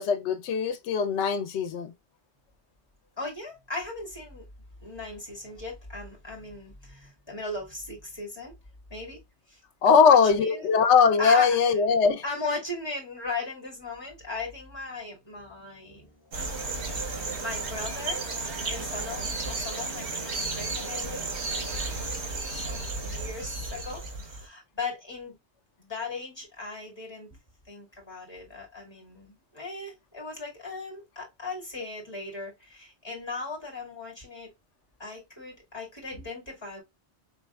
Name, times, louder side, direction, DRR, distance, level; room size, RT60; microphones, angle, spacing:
voice 1, 0.0-1.9 9.8-12.2, left 6 dB, 90° left, 0.9 m, -21 dB
voice 2, 3.2-4.5 4.8-8.5 8.9-9.2 9.5-9.6 9.9-10.7 11.2-11.8 12.2-21.8 22.4-25.4 25.8-27.4 27.7-34.5 35.0-36.8, left 3 dB, 25° left, 2.1 m, -38 dB
sound 1, 16.3-24.5, right 3 dB, 80° right, 1.4 m, -33 dB
4.5 x 3.2 x 2.2 m
omnidirectional pair, 1.1 m